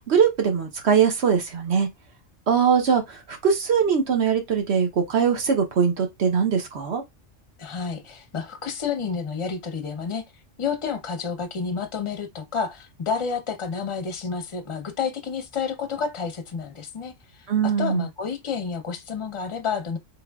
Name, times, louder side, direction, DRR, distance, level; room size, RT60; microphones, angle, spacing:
voice 1, 0.1-1.9 2.5-7.0 17.5-18.0, right 6 dB, 65° right, 1.0 m, -21 dB
voice 2, 7.6-10.2 10.6-20.0, left 6 dB, 35° left, 0.6 m, -30 dB
3.7 x 3.5 x 2.3 m
omnidirectional pair, 1.3 m